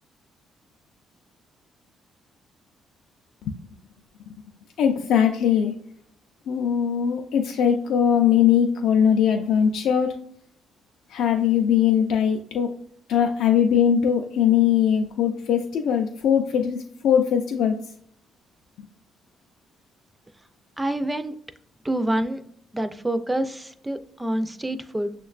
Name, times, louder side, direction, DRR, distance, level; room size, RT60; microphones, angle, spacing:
voice 1, 4.8-5.7 6.5-10.2 11.1-12.7 13.1-17.8 18.8-18.9, left 8 dB, 80° left, 3 dB, 0.3 m, -21 dB
voice 2, 20.8-21.3 21.8-22.4 22.7-25.1, right 1 dB, 10° right, 10 dB, 0.3 m, -27 dB
6.2 x 2.2 x 2.3 m, 0.63 s
cardioid pair, 90°, 0 cm